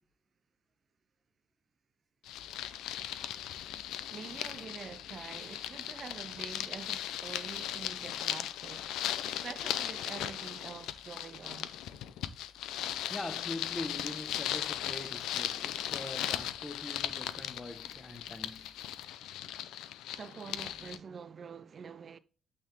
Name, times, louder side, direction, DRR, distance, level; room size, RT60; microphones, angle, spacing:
sound 1, 2.3-21.0, left 11 dB, 90° left, 0.5 m, -38 dB
voice 1, 4.1-9.0 9.2-11.7 20.1-22.2, right 6 dB, 50° right, 0.4 m, -46 dB
voice 2, 13.1-18.7, left 1 dB, 15° left, 1.2 m, -43 dB
8.7 x 3.7 x 3.5 m
cardioid pair, 90°, 0 cm